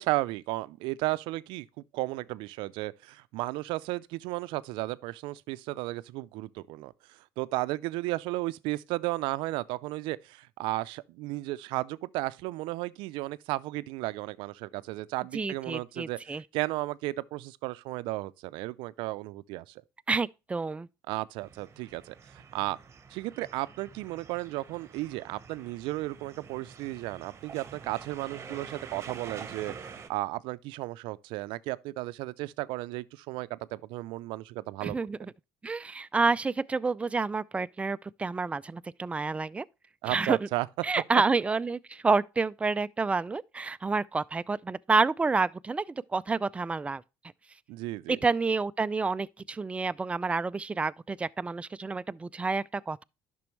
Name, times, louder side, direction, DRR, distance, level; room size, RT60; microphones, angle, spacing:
voice 1, 0.0-6.9 7.4-19.7 21.1-22.8 23.1-35.0 40.0-40.7 47.7-48.2, right 19 dB, 75° right, 0.5 m, -34 dB
voice 2, 15.3-16.4 20.1-20.9 34.8-35.3 35.6-39.6 40.0-40.4 40.8-45.8 46.1-47.0 48.1-53.0, right 4 dB, 15° right, 0.3 m, -29 dB
sound 1, 21.4-30.1, right 6 dB, 30° right, 1.0 m, -47 dB
10.5 x 6.1 x 3.1 m
supercardioid pair, 95°, 9 cm